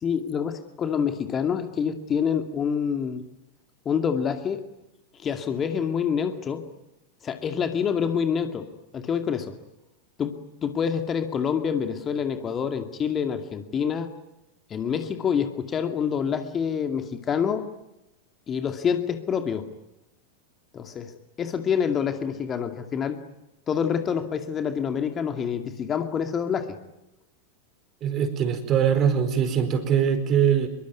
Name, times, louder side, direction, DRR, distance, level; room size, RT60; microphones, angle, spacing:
voice 1, 0.0-3.2 3.9-4.6 5.2-6.7 7.2-8.7 8.9-9.5 10.2-14.1 14.7-17.7 18.5-19.7 20.7-21.1 21.4-23.2 23.7-26.8, left 7 dB, 25° left, 7 dB, 2.4 m, -27 dB
voice 2, 28.0-30.7, right 8 dB, 30° right, 11 dB, 4.6 m, -22 dB
26.0 x 23.0 x 9.6 m, 0.91 s
figure-of-eight pair, 90°, 0 cm